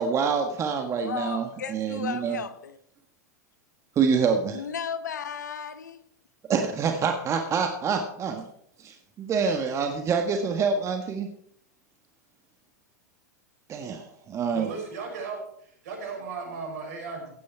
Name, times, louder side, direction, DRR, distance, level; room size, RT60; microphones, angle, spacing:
voice 1, 0.0-2.4 3.9-4.6 6.5-8.4 9.2-11.3 13.7-14.7, right 5 dB, 30° right, 5 dB, 1.6 m, -26 dB
voice 2, 1.0-2.8 4.5-6.0, left 7 dB, 85° left, 13 dB, 1.0 m, -34 dB
voice 3, 14.5-17.3, right 4 dB, 65° right, 2 dB, 5.8 m, -36 dB
16.0 x 9.1 x 4.5 m, 0.68 s
hypercardioid pair, 100°, 9 cm